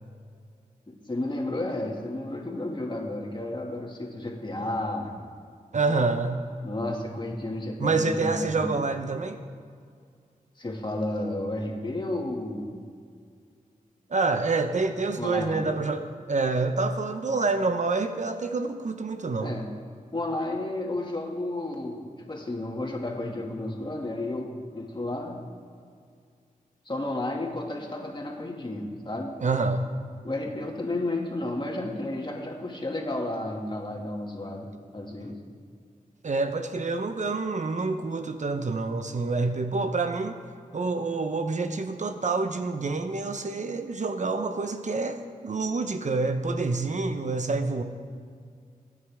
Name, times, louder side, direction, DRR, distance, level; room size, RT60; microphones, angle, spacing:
voice 1, 0.9-5.1 6.6-8.8 10.6-12.8 15.2-15.7 19.4-19.7 20.1-25.4 26.9-29.3 30.2-35.4, left 1 dB, 35° left, 0 dB, 2.3 m, -32 dB
voice 2, 5.7-6.4 7.8-9.4 14.1-19.6 29.4-29.8 36.2-40.4 40.7-47.8, right 3 dB, 55° right, 7 dB, 0.9 m, -27 dB
23.0 x 9.5 x 3.6 m, 2.2 s
cardioid pair, 65°, 15 cm